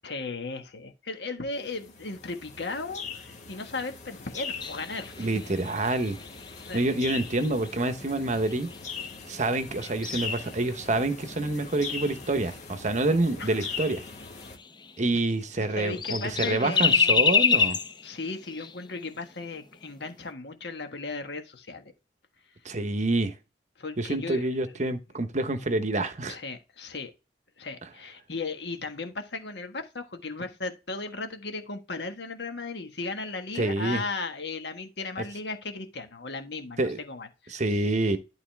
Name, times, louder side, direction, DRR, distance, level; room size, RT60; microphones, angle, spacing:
voice 1, 0.0-5.3 6.7-6.9 13.4-13.7 15.7-17.3 18.0-21.9 23.8-24.5 24.7-24.9 26.3-27.1 27.6-37.8, left 3 dB, 70° left, 1.5 m, -36 dB
sound 1, 1.6-14.6, left 5 dB, 40° left, 1.6 m, -40 dB
sound 2, 4.6-9.2 9.4-12.8 13.3-13.4 13.6-13.7 14.0-15.4 15.7-19.2 19.5-19.6 20.0-20.2, left 6 dB, 25° left, 0.7 m, -29 dB
voice 2, 5.2-6.2 6.7-8.7 9.3-14.0 15.0-17.8 22.6-23.3 24.0-26.4 33.6-34.0 36.8-37.0 37.5-38.2, right 2 dB, 40° right, 1.0 m, -27 dB
12.0 x 4.0 x 3.5 m
head